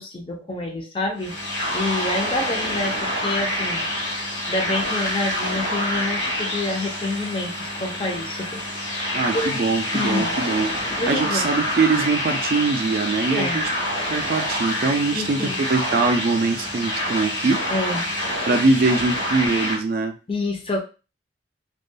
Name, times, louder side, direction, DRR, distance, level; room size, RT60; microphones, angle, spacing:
voice 1, 0.0-1.4 1.7-3.8 4.1-9.6 9.9-10.3 11.0-11.5 13.3-13.6 15.1-15.6 17.7-18.1 20.3-20.8, left 2 dB, 30° left, 2 dB, 0.5 m, -28 dB
sound 1, 1.2-19.8, left 1 dB, 90° left, 1.2 m, -27 dB
voice 2, 9.1-10.7 11.1-13.7 14.1-17.6 18.5-20.1, right 3 dB, 55° right, 6 dB, 0.4 m, -22 dB
2.3 x 2.2 x 2.5 m, 0.32 s
head